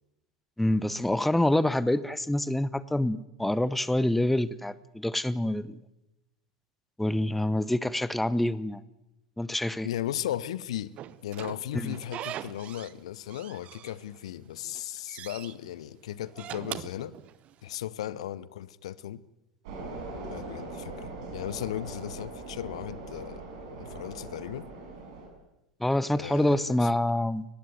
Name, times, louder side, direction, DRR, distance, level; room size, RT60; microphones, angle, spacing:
voice 1, 0.6-5.8 7.0-8.8 9.4-9.9 11.7-12.0 25.8-27.5, left 1 dB, 5° left, 19 dB, 0.7 m, -26 dB
voice 2, 9.8-10.9 11.2-17.1 17.6-19.2 20.3-23.4 23.8-24.7 26.1-26.9, left 12 dB, 65° left, 20 dB, 0.7 m, -36 dB
Slam / Squeak, 11.0-13.0 13.3-14.3 14.7-15.5 16.2-17.8, right 12 dB, 35° right, 0.8 m, -41 dB
sound 1, 19.6-25.3, right 2 dB, 55° right, 6.7 m, -41 dB
20.5 x 15.5 x 9.4 m, 0.93 s
figure-of-eight pair, 80°, 4 cm